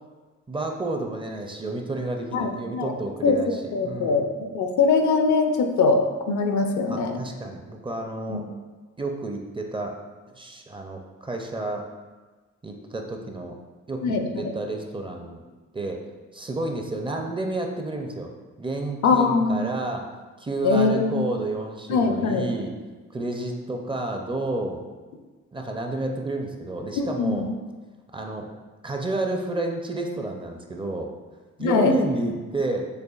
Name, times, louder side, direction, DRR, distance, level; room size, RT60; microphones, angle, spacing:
voice 1, 0.5-4.3 6.9-8.4 9.0-9.9 10.3-11.8 12.6-13.5 13.9-15.4 15.7-16.0 16.3-18.3 18.6-20.1 20.4-22.7 23.1-24.8 25.5-27.5 28.1-28.5 28.8-31.1 31.6-32.9, right 2 dB, 15° right, 2 dB, 0.4 m, -30 dB
voice 2, 2.3-2.9 3.2-3.4 3.7-4.2 4.5-7.2 8.3-8.4 14.0-14.5 19.0-19.7 20.6-21.2 21.9-22.5 26.9-27.5 31.6-31.9, left 4 dB, 70° left, 5 dB, 0.5 m, -22 dB
6.6 x 2.4 x 2.4 m, 1.3 s
cardioid pair, 90°, 30 cm